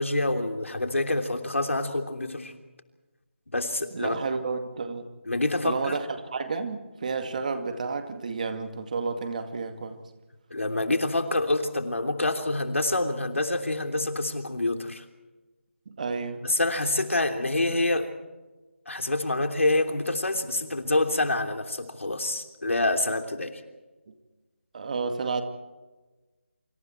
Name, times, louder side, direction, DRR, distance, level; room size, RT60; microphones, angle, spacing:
voice 1, 0.0-2.5 3.5-4.1 5.2-6.0 10.5-15.1 16.4-18.1 18.9-23.6, left 2 dB, 85° left, 6 dB, 3.3 m, -27 dB
voice 2, 3.9-5.1 5.6-10.0 15.9-16.4 24.1-24.2 24.7-25.4, right 4 dB, 35° right, 7 dB, 2.3 m, -31 dB
29.0 x 26.0 x 4.5 m, 1.2 s
figure-of-eight pair, 165°, 7 cm